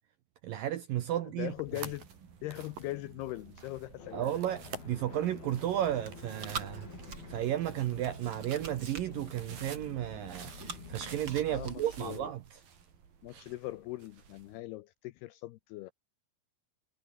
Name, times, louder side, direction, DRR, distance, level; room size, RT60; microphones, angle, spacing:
voice 1, 0.4-1.5 4.1-6.9 7.3-12.4 13.3-13.4, right 12 dB, 75° right, 2.1 m, -33 dB
voice 2, 1.2-2.1 2.4-4.4 11.5-12.3 13.2-15.9, left 17 dB, 80° left, 2.4 m, -40 dB
sound 1, 1.4-14.6, right 7 dB, 50° right, 5.1 m, -51 dB
sound 2, 4.0-11.4, left 5 dB, 55° left, 7.0 m, -49 dB
Chewing mastication, 5.7-12.3, right 5 dB, 30° right, 2.9 m, -46 dB
omnidirectional pair, 5.3 m